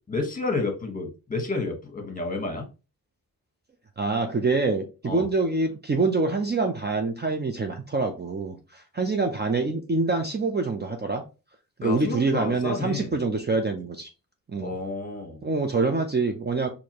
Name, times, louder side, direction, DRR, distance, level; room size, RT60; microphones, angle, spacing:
voice 1, 0.1-2.7 5.0-5.3 11.8-13.1 14.6-15.4, left 3 dB, 20° left, 3 dB, 1.3 m, -30 dB
voice 2, 4.0-11.2 11.8-14.1 14.5-14.8 15.4-16.7, right 3 dB, 30° right, 4 dB, 0.5 m, -25 dB
4.6 x 2.7 x 2.9 m, 0.30 s
wide cardioid pair, 110°, 36 cm